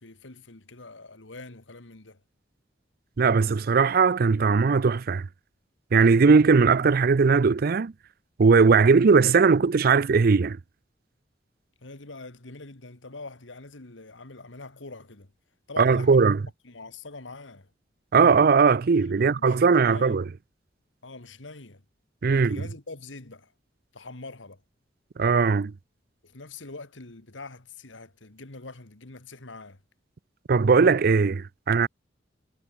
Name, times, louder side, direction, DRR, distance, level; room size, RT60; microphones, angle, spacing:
voice 1, 0.0-2.2 11.8-15.3 15.7-16.3 16.6-17.7 19.2-20.2 21.0-21.8 22.3-23.5 23.9-24.6 26.2-29.8, left 3 dB, 90° left, 2.2 m, -44 dB
voice 2, 3.2-5.3 5.9-7.9 8.4-10.6 15.8-16.4 18.1-20.2 22.2-22.6 25.2-25.7 30.5-31.9, right 5 dB, 50° right, 0.5 m, -19 dB
head